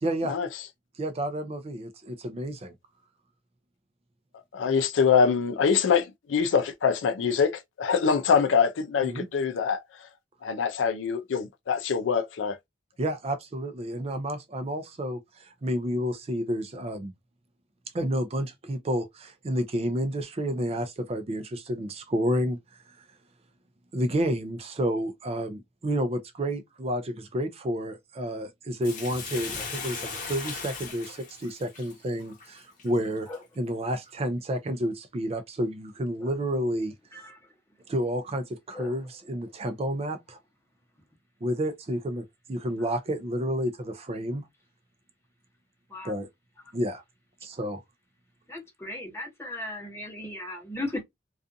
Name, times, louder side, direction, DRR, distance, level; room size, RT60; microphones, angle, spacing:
voice 1, 0.0-0.4 1.0-2.7 9.0-9.3 13.0-17.1 17.9-22.6 22.9-23.0 23.9-33.3 33.6-36.9 37.9-40.4 41.4-44.5 46.0-46.3 46.7-47.0 47.4-47.8, equal, 30° right, 0.4 m, -30 dB
voice 2, 4.5-9.8 10.4-12.6, left 6 dB, 85° left, 0.4 m, -24 dB
Bathtub (filling or washing), 28.8-33.4 33.9-34.0, left 4 dB, 45° left, 0.8 m, -38 dB
voice 3, 48.5-51.0, left 1 dB, 15° left, 0.8 m, -37 dB
2.4 x 2.4 x 2.5 m
head